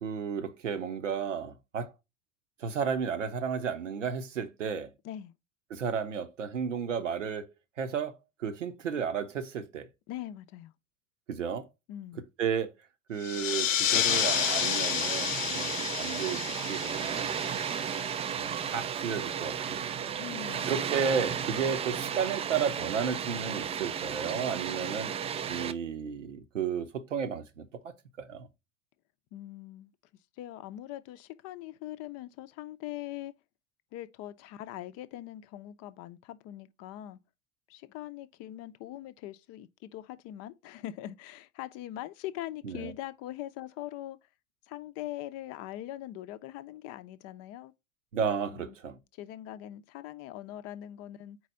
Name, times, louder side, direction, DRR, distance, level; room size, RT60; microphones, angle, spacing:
voice 1, 0.0-1.9 2.6-4.9 5.7-7.5 7.8-9.9 11.3-11.7 12.4-12.7 13.1-16.4 16.7-17.4 18.4-20.2 20.7-25.1 25.5-28.5 42.6-42.9 48.1-49.0, right 7 dB, 75° right, 0.9 m, -33 dB
voice 2, 10.1-10.7 11.9-12.2 20.2-20.9 29.3-29.9 30.4-33.3 33.9-37.2 37.7-44.2 44.7-47.7 48.5-48.8 49.2-51.4, left 13 dB, 40° left, 0.6 m, -42 dB
sound 1, 13.2-18.4, left 9 dB, 85° left, 0.5 m, -30 dB
Water, 14.1-25.7, right 8 dB, 15° right, 0.4 m, -34 dB
4.7 x 4.1 x 5.5 m
figure-of-eight pair, 75°, 37 cm